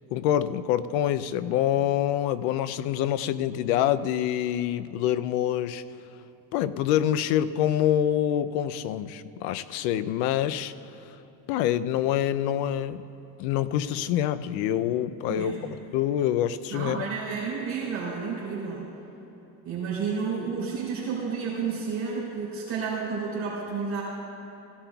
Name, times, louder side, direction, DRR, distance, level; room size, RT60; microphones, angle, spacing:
voice 1, 0.1-5.8 6.5-10.7 11.5-13.0 13.4-15.5 15.9-17.1, left 11 dB, 85° left, 15 dB, 0.6 m, -26 dB
voice 2, 15.3-15.7 16.7-18.9 19.6-24.0, right 5 dB, 35° right, -6 dB, 3.2 m, -31 dB
17.5 x 15.5 x 2.3 m, 3.0 s
cardioid pair, 175°, 48 cm